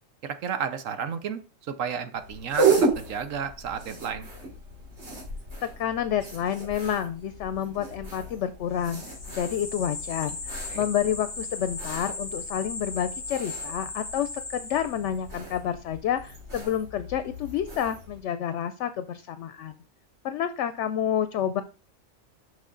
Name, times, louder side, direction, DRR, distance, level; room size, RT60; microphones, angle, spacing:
voice 1, 0.2-1.4 1.7-4.3 10.7-10.8, right 7 dB, 85° right, 11 dB, 1.2 m, -32 dB
sound 1, 2.2-18.2, right 4 dB, 60° right, 3.1 m, -33 dB
voice 2, 5.6-9.0 9.3-19.8 20.2-21.6, left 9 dB, 70° left, 11 dB, 0.8 m, -29 dB
sound 2, 8.8-15.3, left 3 dB, 30° left, 1.0 m, -37 dB
6.3 x 5.9 x 3.8 m, 0.34 s
omnidirectional pair, 1.3 m